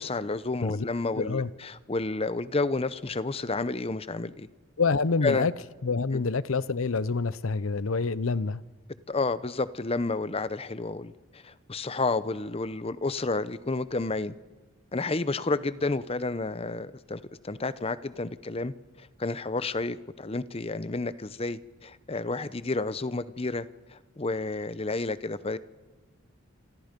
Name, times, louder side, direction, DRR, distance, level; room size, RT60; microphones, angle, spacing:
voice 1, 0.0-4.5 5.2-5.5 6.1-6.2 9.1-11.1 11.4-14.3 14.9-18.7 19.2-23.7 24.2-25.6, left 3 dB, 30° left, 0.7 m, -30 dB
voice 2, 1.2-1.5 4.8-5.5 5.8-8.6, left 4 dB, 75° left, 0.7 m, -27 dB
29.0 x 26.5 x 5.3 m
head